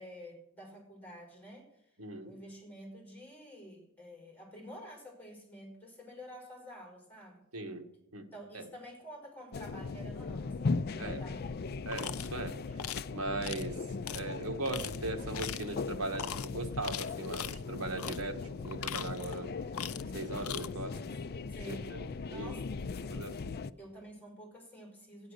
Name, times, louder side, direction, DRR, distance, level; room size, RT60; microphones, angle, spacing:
voice 1, 0.0-1.7 2.2-7.4 8.3-11.6 21.5-22.6 23.0-23.1 23.8-25.3, equal, 10° left, -1 dB, 5.1 m, -49 dB
voice 2, 2.0-2.3 7.5-7.8 8.1-8.3 8.5-8.7 11.0-11.2 11.8-12.6 13.1-13.8 14.1-19.5 20.1-21.0 21.7-22.5 23.1-23.5, right 2 dB, 80° right, 5 dB, 1.5 m, -39 dB
sound 1, 9.5-23.7, left 4 dB, 45° left, 0.4 m, -38 dB
sound 2, 11.9-12.3 12.8-13.1 13.4-13.7 14.1-14.2 14.6-15.0 15.3-15.7 16.1-16.5 16.8-17.6 18.0-18.2 18.6-19.4 19.7-20.1 20.4-20.7, left 10 dB, 85° left, 0.6 m, -40 dB
14.0 x 9.4 x 6.4 m, 0.83 s
head